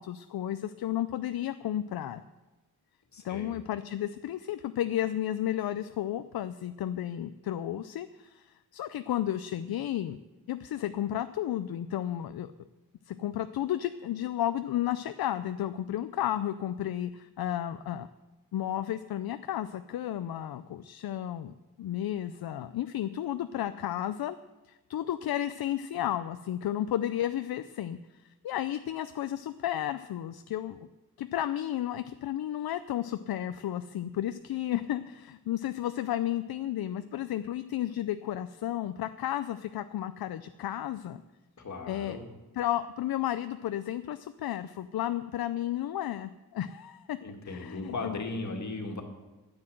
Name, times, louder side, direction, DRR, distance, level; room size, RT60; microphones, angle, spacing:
voice 1, 0.0-2.2 3.2-10.2 10.5-12.5 13.1-18.1 18.5-24.4 24.7-28.0 28.2-30.8 31.2-41.2 41.9-42.2 42.5-47.2 47.4-48.2, left 12 dB, 75° left, 11 dB, 0.5 m, -33 dB
voice 2, 3.1-3.6 41.6-42.3 47.2-49.0, left 3 dB, 50° left, 3 dB, 2.0 m, -37 dB
9.7 x 9.7 x 7.8 m, 1.1 s
wide cardioid pair, 125°, 38 cm